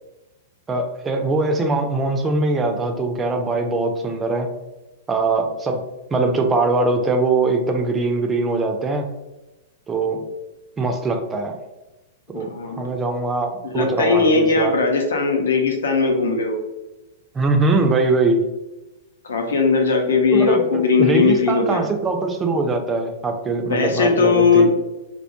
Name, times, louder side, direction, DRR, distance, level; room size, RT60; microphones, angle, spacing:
voice 1, 0.7-4.5 5.1-5.8 6.1-9.1 9.9-10.2 10.8-11.6 12.3-14.7 17.3-18.4 20.3-24.8, right 3 dB, 15° right, 4 dB, 0.4 m, -22 dB
voice 2, 12.3-12.9 13.6-16.6 19.2-21.8 23.7-24.7, left 4 dB, 70° left, 3 dB, 0.5 m, -18 dB
2.2 x 2.1 x 2.8 m, 1.0 s
figure-of-eight pair, 100°, 0 cm